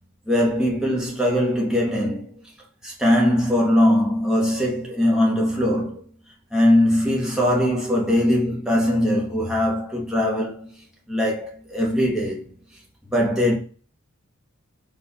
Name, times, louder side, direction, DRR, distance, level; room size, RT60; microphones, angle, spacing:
voice 1, 0.3-2.3 2.8-6.0 6.5-10.7 11.1-12.4 13.1-13.6, left 1 dB, 5° right, 1.0 m, -21 dB
4.4 x 2.4 x 3.9 m
head